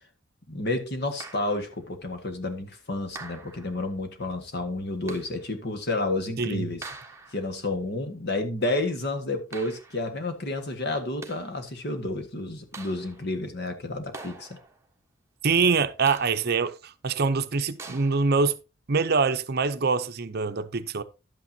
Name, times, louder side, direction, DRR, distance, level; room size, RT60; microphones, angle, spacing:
voice 1, 0.5-6.8 7.3-14.5, left 2 dB, 55° left, 1.7 m, -30 dB
sound 1, 1.2-1.8 3.1-3.9 5.1-5.5 6.8-7.5 9.5-10.1 11.0-11.6 12.7-13.3 14.1-14.9 16.1-16.6 17.8-18.4, right 3 dB, 15° right, 1.3 m, -44 dB
voice 2, 6.4-6.7 15.4-18.6 18.9-21.0, right 4 dB, 50° right, 0.6 m, -24 dB
11.5 x 8.7 x 2.8 m
head